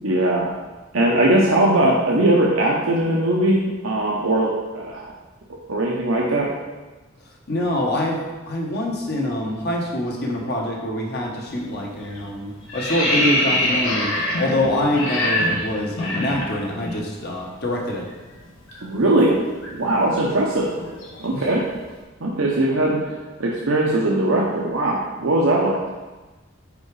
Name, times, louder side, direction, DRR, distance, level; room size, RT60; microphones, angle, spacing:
voice 1, 0.0-0.5 0.9-5.1 5.7-6.5 18.8-19.4 19.7-20.7 21.2-21.6 22.2-23.1 23.4-25.8, right 1 dB, 85° right, -3 dB, 0.8 m, -20 dB
voice 2, 7.5-18.1 21.3-21.4, left 1 dB, 55° left, -1 dB, 1.1 m, -25 dB
sound 1, 11.4-11.7 12.0-17.0 17.3-17.5 17.8-21.8, left 1 dB, 90° left, 1.3 m, -25 dB
5.2 x 4.8 x 4.8 m, 1.2 s
head